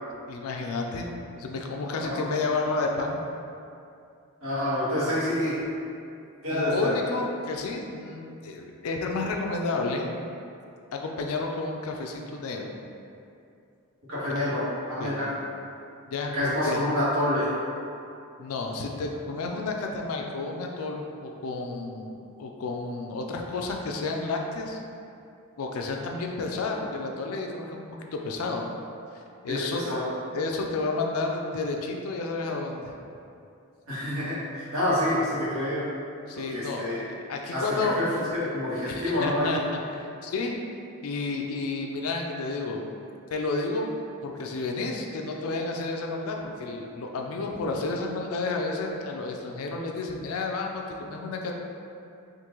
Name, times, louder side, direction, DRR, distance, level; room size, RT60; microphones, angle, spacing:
voice 1, 0.3-3.2 6.5-10.1 10.9-12.7 14.3-14.5 15.0-15.2 16.1-16.8 18.4-24.8 25.6-27.9 28.1-28.7 29.4-29.8 30.3-32.9 36.3-38.0 38.9-39.6 39.9-40.6 41.0-42.9 43.3-43.9 44.2-51.5, left 3 dB, 75° left, 1 dB, 0.4 m, -31 dB
voice 2, 1.8-2.3 4.4-5.6 6.4-6.9 14.1-15.3 16.3-17.5 29.5-30.1 33.9-35.8 36.5-37.0 37.5-38.0 38.3-39.6, left 1 dB, 65° right, -11 dB, 1.4 m, -27 dB
3.6 x 2.6 x 3.0 m, 2.6 s
head